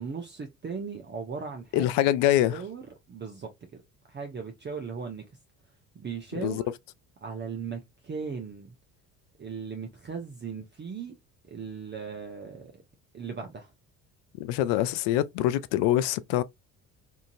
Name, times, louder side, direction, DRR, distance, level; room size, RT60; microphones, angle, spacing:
voice 1, 0.0-1.9 2.5-3.8 4.1-5.3 5.9-6.6 7.2-8.7 9.4-11.1 11.5-12.8 13.1-13.7, right 5 dB, 25° right, 0.6 m, -38 dB
voice 2, 1.7-2.6 6.3-6.6 14.4-16.4, left 13 dB, 65° left, 0.5 m, -24 dB
2.8 x 2.5 x 2.6 m
hypercardioid pair, 55°, 46 cm